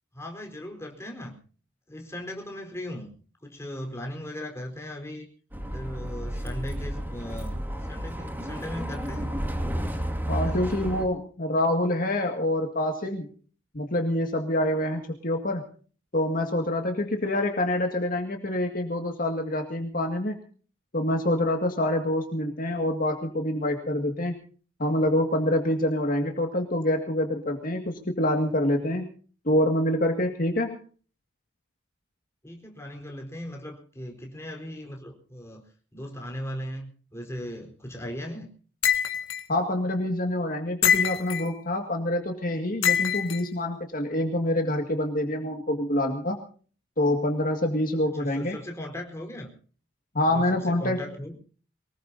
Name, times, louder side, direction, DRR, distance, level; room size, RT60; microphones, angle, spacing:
voice 1, 0.1-1.4 1.9-3.1 3.4-5.3 5.7-9.3 10.4-10.9 32.4-35.6 35.9-38.5 48.1-49.5 50.3-51.4, left 1 dB, 15° left, 2 dB, 4.4 m, -38 dB
Bus, 5.5-11.1, equal, 10° right, 2.4 m, -32 dB
voice 2, 10.3-13.3 13.7-15.6 16.1-20.4 20.9-24.4 24.8-29.1 29.5-30.8 39.5-46.4 47.0-48.6 50.1-51.1, left 1 dB, 45° left, 3 dB, 2.1 m, -26 dB
sound 1, 38.8-39.4 40.8-41.5 42.8-43.4, left 8 dB, 90° left, 1.9 m, -24 dB
23.5 x 20.5 x 2.8 m, 0.41 s
head